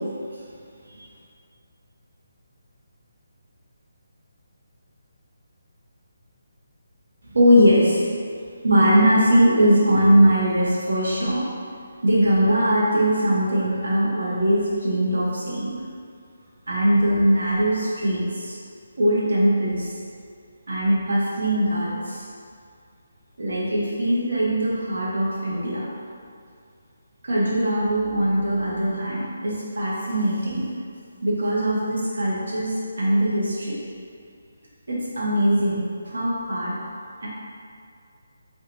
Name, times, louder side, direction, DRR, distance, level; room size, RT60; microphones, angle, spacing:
voice 1, 7.3-8.1 8.6-11.4 12.0-15.8 16.7-18.6 19.0-19.9 20.7-22.2 23.4-25.9 27.2-30.7 31.2-33.8 34.9-36.7 37.2-37.3, equal, 85° right, -6 dB, 0.7 m, -21 dB
2.9 x 2.2 x 2.6 m, 2.3 s
hypercardioid pair, 170°, 0 cm